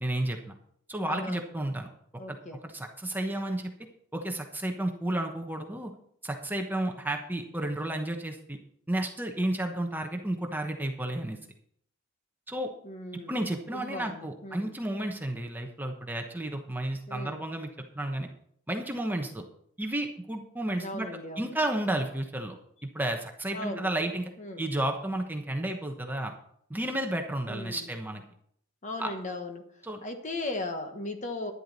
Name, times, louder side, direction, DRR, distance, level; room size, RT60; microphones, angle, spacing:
voice 1, 0.0-0.6 0.9-1.9 2.3-2.4 2.6-3.7 4.1-5.9 6.2-8.6 8.9-11.4 12.5-12.7 13.1-17.7 17.9-18.3 18.7-19.4 19.8-21.1 21.4-22.6 22.9-24.3 24.6-26.3 26.7-28.2 29.0-29.1 29.8-30.0, right 1 dB, 10° right, 3 dB, 1.0 m, -32 dB
voice 2, 1.1-1.4 2.2-2.6 12.8-14.7 17.1-17.4 20.8-21.5 23.5-23.9 24.4-24.7 27.5-27.9 28.8-29.6 30.0-31.5, left 2 dB, 35° left, 6 dB, 1.2 m, -37 dB
11.0 x 10.5 x 4.1 m, 0.67 s
head